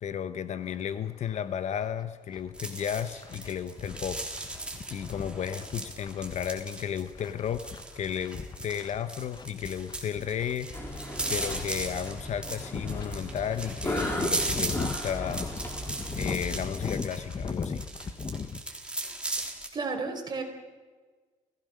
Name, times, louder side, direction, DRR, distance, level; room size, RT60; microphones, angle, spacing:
voice 1, 0.0-4.3 4.9-10.7 11.3-15.5 16.2-17.8, left 8 dB, 60° left, 1.0 m, -33 dB
sound 1, 0.7-0.8 1.3-1.4 1.8-18.6, left 5 dB, 35° left, 1.1 m, -39 dB
sound 2, 2.5-19.7, right 2 dB, 10° right, 3.8 m, -37 dB
sound 3, 10.7-16.7, left 1 dB, 15° left, 3.9 m, -36 dB
voice 2, 19.7-20.4, right 4 dB, 30° right, 4.7 m, -32 dB
30.0 x 16.5 x 6.5 m
cardioid pair, 105°, 13 cm